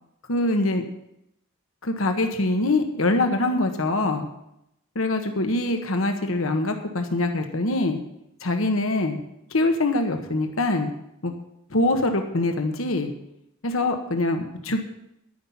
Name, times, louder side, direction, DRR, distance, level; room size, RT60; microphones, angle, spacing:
voice 1, 0.3-0.8 1.8-4.3 4.9-8.0 8.4-9.2 9.5-10.9 11.2-11.3 11.7-13.1 13.6-14.8, left 2 dB, 70° left, 5 dB, 1.3 m, -24 dB
11.0 x 10.0 x 5.7 m, 0.81 s
head